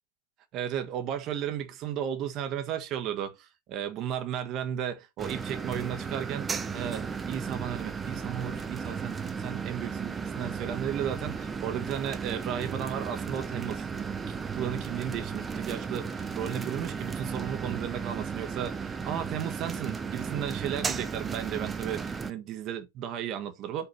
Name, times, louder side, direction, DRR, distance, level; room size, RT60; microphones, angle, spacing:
voice 1, 0.5-23.9, right 9 dB, 35° right, 1.5 m, -34 dB
sound 1, 5.2-22.3, right 5 dB, 15° right, 0.8 m, -35 dB
5.7 x 3.8 x 5.7 m
figure-of-eight pair, 100°, 0 cm